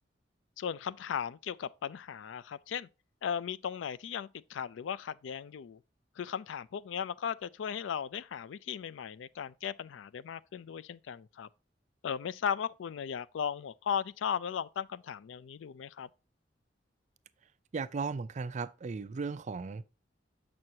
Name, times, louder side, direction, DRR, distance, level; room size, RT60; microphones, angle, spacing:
voice 1, 0.6-2.9 3.2-5.8 6.2-11.5 12.0-16.1, left 7 dB, 85° left, 0.4 m, -37 dB
voice 2, 17.7-19.8, right 4 dB, 40° right, 0.4 m, -36 dB
7.6 x 6.1 x 2.7 m
head